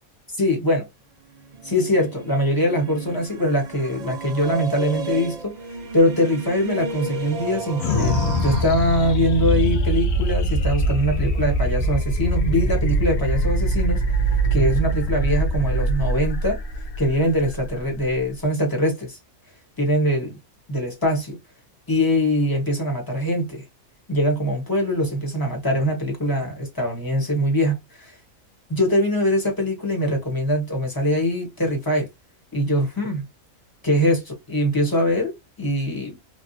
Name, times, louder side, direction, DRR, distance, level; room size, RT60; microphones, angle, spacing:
voice 1, 0.4-0.9 1.6-5.6 5.9-14.0 14.5-16.6 17.0-19.2 19.8-20.3 20.7-21.4 21.9-23.6 24.1-28.1 28.7-32.1 32.5-33.2 33.8-36.2, equal, 15° left, 1.1 m, -22 dB
sound 1, 1.4-8.6, right 4 dB, 65° right, 0.4 m, -33 dB
sound 2, 7.8-18.5, right 1 dB, 70° left, 1.0 m, -23 dB
3.3 x 2.4 x 2.6 m
omnidirectional pair, 1.5 m